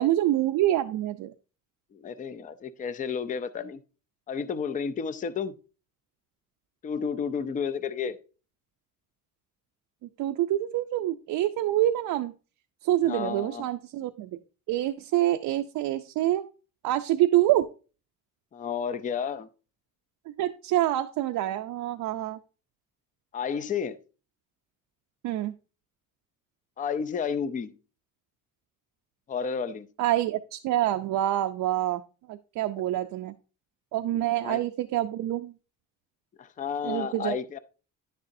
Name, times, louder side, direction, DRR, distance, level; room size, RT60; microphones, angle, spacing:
voice 1, 0.0-1.3 10.2-12.3 12.8-14.4 14.7-16.5 16.8-17.7 20.4-22.4 25.2-25.5 30.0-32.0 32.3-33.3 33.9-35.5 36.8-37.4, right 13 dB, 75° right, 0.6 m, -26 dB
voice 2, 1.9-3.8 4.3-5.5 6.8-8.2 13.0-13.7 18.5-19.5 23.3-24.0 26.8-27.7 29.3-29.9 34.1-34.6 36.4-37.6, left 6 dB, 25° left, 0.5 m, -31 dB
10.5 x 6.7 x 2.6 m
cardioid pair, 150°, 34 cm